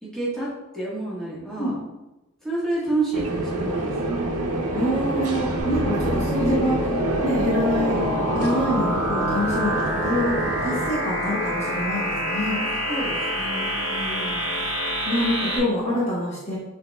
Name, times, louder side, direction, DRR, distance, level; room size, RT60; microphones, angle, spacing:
voice 1, 0.0-0.5 0.7-1.7 2.4-4.4 12.9-14.6, right 2 dB, 5° left, -8 dB, 1.3 m, -29 dB
sound 1, 3.1-10.9, right 2 dB, 85° right, 0.7 m, -27 dB
voice 2, 4.7-6.9 7.2-8.1 8.3-12.6 15.1-16.6, left 1 dB, 30° left, -7 dB, 1.1 m, -26 dB
sound 2, 5.6-15.6, equal, 15° right, 1.1 m, -27 dB
6.6 x 3.5 x 2.3 m, 1.0 s
head